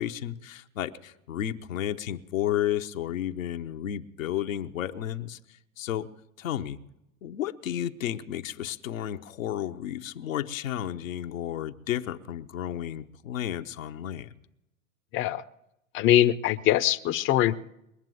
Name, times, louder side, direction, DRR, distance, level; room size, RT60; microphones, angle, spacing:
voice 1, 0.0-5.4 5.8-6.1 6.4-6.8 7.2-14.3, left 11 dB, 75° left, 7 dB, 0.8 m, -32 dB
voice 2, 15.1-15.4 15.9-17.6, left 13 dB, 30° left, 13 dB, 0.6 m, -22 dB
21.0 x 7.4 x 9.1 m, 0.85 s
hypercardioid pair, 85°, 40 cm